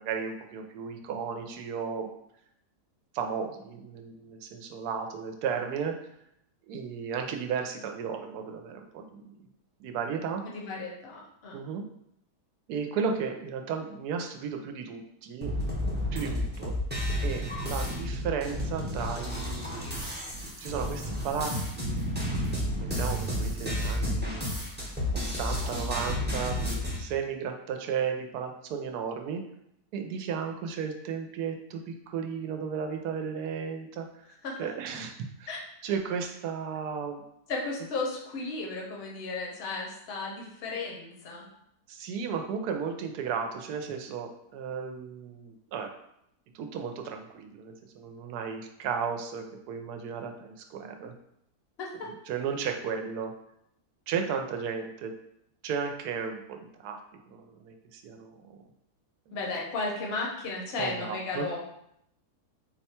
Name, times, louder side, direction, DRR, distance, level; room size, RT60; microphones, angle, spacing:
voice 1, 0.0-2.1 3.1-6.0 6.7-9.3 9.8-10.4 11.5-11.8 12.7-15.5 16.1-16.7 17.2-19.9 20.3-22.1 22.8-24.6 25.1-29.4 29.9-34.1 34.6-35.5 35.8-37.2 41.9-45.9 46.5-51.1 52.0-53.3 54.1-55.1 55.6-57.0 57.3-58.6 59.3-59.4 60.8-61.5, right 6 dB, 80° right, 4 dB, 1.1 m, -34 dB
voice 2, 10.4-11.6 34.4-34.7 35.5-35.6 37.5-41.4 51.8-52.1 59.3-61.6, left 3 dB, 50° left, -1 dB, 0.9 m, -34 dB
sound 1, 15.4-27.0, equal, 10° right, 0.5 m, -31 dB
4.2 x 2.2 x 4.2 m, 0.76 s
omnidirectional pair, 1.7 m